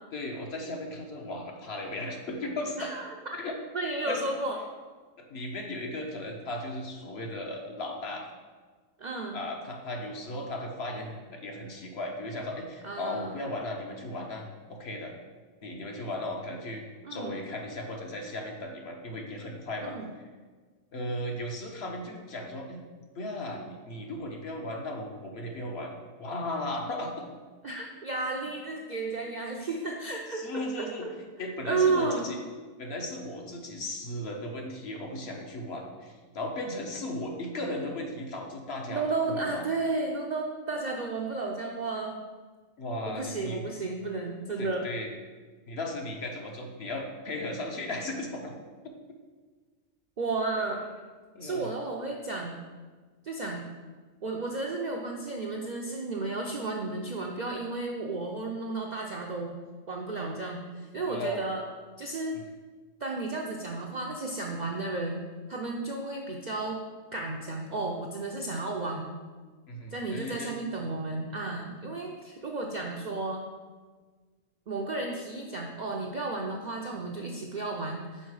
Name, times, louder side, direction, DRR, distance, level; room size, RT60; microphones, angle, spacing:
voice 1, 0.1-2.9 3.4-3.6 4.1-4.3 5.2-8.3 9.3-15.1 15.6-20.0 20.9-22.8 23.1-25.9 26.2-27.2 30.3-31.1 31.4-32.4 32.8-39.6 42.8-43.6 44.6-45.1 45.7-48.5 51.3-51.7 61.1-61.4 62.3-62.4 69.7-70.5, left 1 dB, 60° left, 1 dB, 1.0 m, -36 dB
voice 2, 2.8-3.4 3.7-4.6 9.0-9.4 12.8-13.3 17.0-17.4 19.8-20.1 27.6-31.1 31.6-32.3 38.9-42.2 43.1-44.9 50.2-50.9 51.4-52.6 53.2-53.6 54.2-59.6 59.9-61.6 62.0-62.4 63.0-66.8 67.1-69.1 69.9-73.5 74.7-78.3, right 3 dB, 55° right, 0 dB, 0.5 m, -33 dB
5.5 x 4.6 x 4.7 m, 1.4 s
omnidirectional pair, 1.3 m